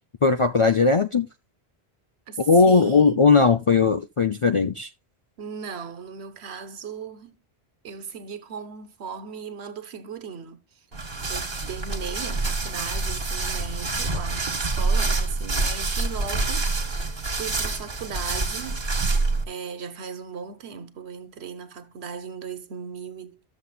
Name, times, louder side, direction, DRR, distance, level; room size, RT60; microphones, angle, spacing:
voice 1, 0.2-1.3 2.5-4.9, left 4 dB, 45° left, 0.4 m, -18 dB
voice 2, 2.3-3.3 5.4-7.4 7.8-11.0 11.3-17.0 17.3-18.9 19.5-23.4, right 6 dB, 75° right, 1.2 m, -37 dB
sound 1, 10.9-19.4, right 3 dB, 55° right, 1.8 m, -26 dB
14.0 x 7.1 x 2.3 m
omnidirectional pair, 1.1 m